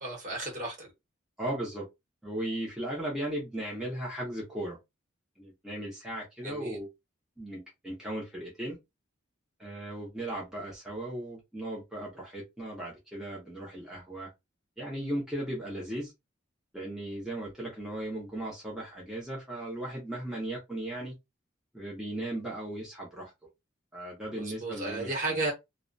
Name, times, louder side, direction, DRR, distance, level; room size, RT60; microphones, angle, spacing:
voice 1, 0.0-0.9 6.4-6.8 24.4-25.5, right 2 dB, 40° right, 1.0 m, -33 dB
voice 2, 1.4-1.9 2.2-4.8 5.4-6.9 7.4-8.8 9.6-14.3 14.8-16.1 16.7-21.1 21.7-23.3 23.9-25.4, right 1 dB, 5° right, 0.7 m, -37 dB
2.3 x 2.1 x 2.5 m
head